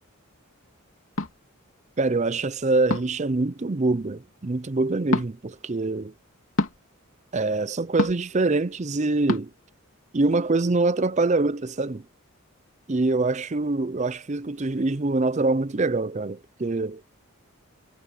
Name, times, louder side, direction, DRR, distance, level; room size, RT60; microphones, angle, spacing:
sound 1, 1.2-1.3 2.9-3.2 5.1-5.3 6.6-6.8 8.0-8.3 9.3-9.4, left 1 dB, 65° left, 3.0 m, -25 dB
voice 1, 2.0-6.1 7.3-9.5 10.1-12.0 12.9-17.0, right 3 dB, 30° right, 0.5 m, -24 dB
head